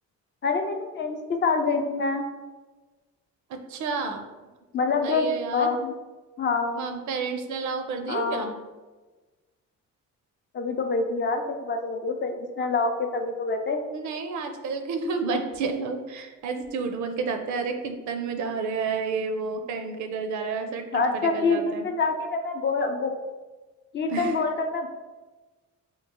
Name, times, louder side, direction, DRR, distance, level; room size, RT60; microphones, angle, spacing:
voice 1, 0.4-2.3 4.7-5.9 6.4-6.9 8.1-8.4 10.5-13.8 20.9-23.1 23.9-24.9, left 4 dB, 40° left, 4 dB, 0.4 m, -26 dB
voice 2, 3.5-4.3 5.0-5.8 6.7-8.5 13.9-21.9 24.1-24.4, right 4 dB, 70° right, 6 dB, 0.5 m, -30 dB
3.1 x 2.3 x 3.6 m, 1.2 s
cardioid pair, 90°, 30 cm